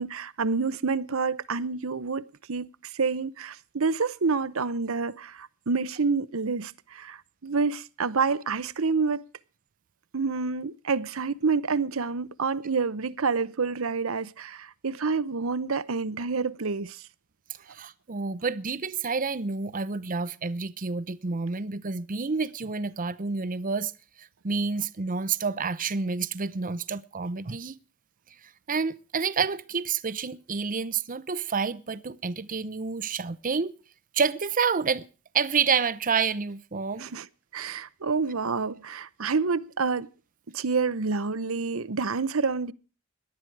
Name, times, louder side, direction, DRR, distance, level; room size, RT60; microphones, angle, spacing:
voice 1, 0.0-9.2 10.1-17.0 37.0-37.3 37.5-40.1 40.5-42.7, right 4 dB, 70° right, 0.8 m, -28 dB
voice 2, 17.7-23.9 24.2-27.7 28.7-33.7 34.1-35.1 35.3-37.1, right 5 dB, 40° right, 0.7 m, -29 dB
18.5 x 11.5 x 4.7 m
head